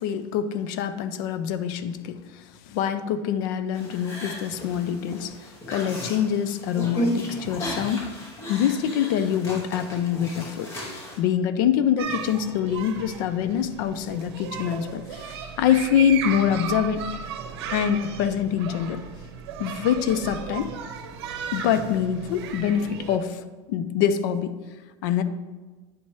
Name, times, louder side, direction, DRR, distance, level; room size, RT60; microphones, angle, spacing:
voice 1, 0.0-8.1 8.5-17.1 17.7-19.0 19.6-20.7 21.5-23.4 23.7-24.5 25.0-25.2, left 9 dB, 45° left, 12 dB, 0.4 m, -25 dB
sound 1, 3.7-11.2, equal, 20° left, 0.8 m, -34 dB
sound 2, 12.0-23.2, right 7 dB, 65° right, 0.8 m, -35 dB
9.2 x 4.3 x 3.1 m, 1.3 s
supercardioid pair, 180°, 14 cm